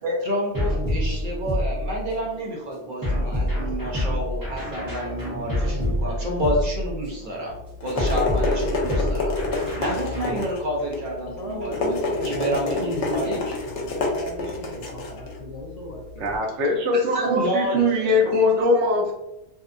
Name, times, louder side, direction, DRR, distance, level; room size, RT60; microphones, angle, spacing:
voice 1, 0.0-7.5 7.8-9.3 9.8-11.8 12.2-13.4 14.0-14.1 16.9-18.4, equal, 55° right, -3 dB, 0.7 m, -29 dB
sound 1, 0.5-2.3 3.0-7.2 8.0-10.4, left 1 dB, 20° right, 0.9 m, -27 dB
voice 2, 7.2-7.6 11.4-13.5 13.8-16.4, equal, 45° left, -1 dB, 0.5 m, -34 dB
sound 2, 7.5-16.4, left 3 dB, 75° left, 0.9 m, -28 dB
voice 3, 16.2-19.1, left 2 dB, 80° right, 1 dB, 0.9 m, -21 dB
2.7 x 2.2 x 2.5 m, 0.90 s
omnidirectional pair, 1.2 m